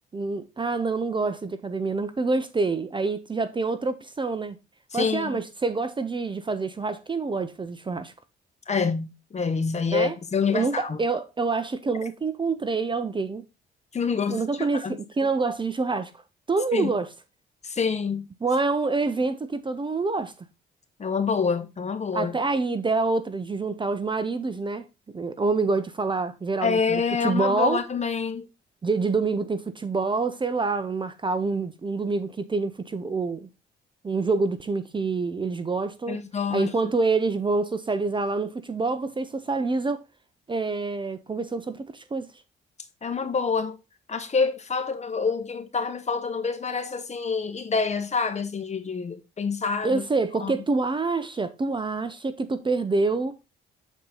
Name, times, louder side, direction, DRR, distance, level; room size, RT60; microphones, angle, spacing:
voice 1, 0.1-4.6 4.9-8.1 9.9-10.2 10.5-13.4 14.3-16.1 16.5-17.1 18.4-20.3 22.1-24.9 25.1-27.8 28.8-33.5 34.0-36.2 36.5-40.0 40.5-42.3 49.8-53.4, right 3 dB, 25° right, 0.6 m, -26 dB
voice 2, 4.9-5.4 8.7-11.0 13.9-15.0 16.7-16.9 17.6-18.3 21.0-22.4 26.6-28.5 36.1-36.7 43.0-43.8 44.1-50.0 50.4-50.6, left 5 dB, 35° left, 1.2 m, -27 dB
7.3 x 4.2 x 3.8 m
cardioid pair, 90°, 20 cm